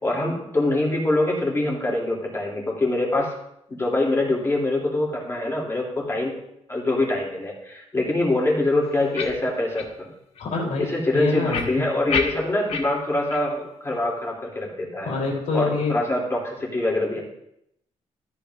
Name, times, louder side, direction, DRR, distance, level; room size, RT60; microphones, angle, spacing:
voice 1, 0.0-3.3 3.7-6.4 6.7-10.1 10.8-15.1 15.5-17.2, left 2 dB, 20° left, -3 dB, 2.7 m, -24 dB
sound 1, 9.1-9.3 9.7-9.9 10.3-10.4 11.5-12.8 13.3-13.4 13.9-14.0, left 5 dB, 60° left, 1.3 m, -27 dB
voice 2, 10.4-10.9 11.1-11.9 15.0-15.9, left 3 dB, 75° left, -1 dB, 3.2 m, -25 dB
13.5 x 8.7 x 2.5 m, 0.78 s
cardioid pair, 120°, 12 cm